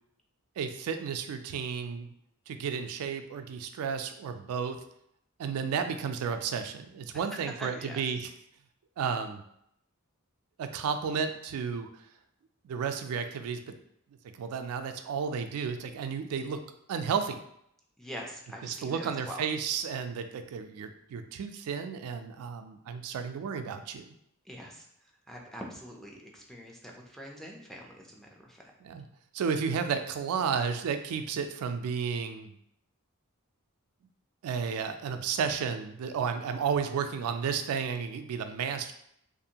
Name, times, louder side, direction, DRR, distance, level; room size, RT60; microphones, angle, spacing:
voice 1, 0.6-2.1 2.5-4.8 5.4-8.3 9.0-9.4 10.6-11.9 12.6-13.7 14.4-16.6 16.9-17.4 18.6-24.1 28.8-29.0 29.3-32.5 34.4-38.9, right 6 dB, 85° right, 8 dB, 0.3 m, -32 dB
voice 2, 7.6-8.0 18.0-19.4 24.4-28.6, equal, ahead, -1 dB, 0.4 m, -44 dB
2.6 x 2.4 x 2.8 m, 0.73 s
head